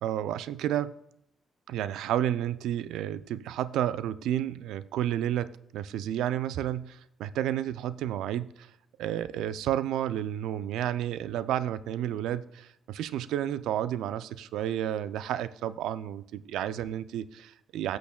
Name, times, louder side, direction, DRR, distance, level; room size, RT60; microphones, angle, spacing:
voice 1, 0.0-0.9 1.7-8.7 9.0-18.0, right 11 dB, 80° right, 15 dB, 0.3 m, -31 dB
17.5 x 6.4 x 2.2 m, 0.76 s
supercardioid pair, 55°, 0 cm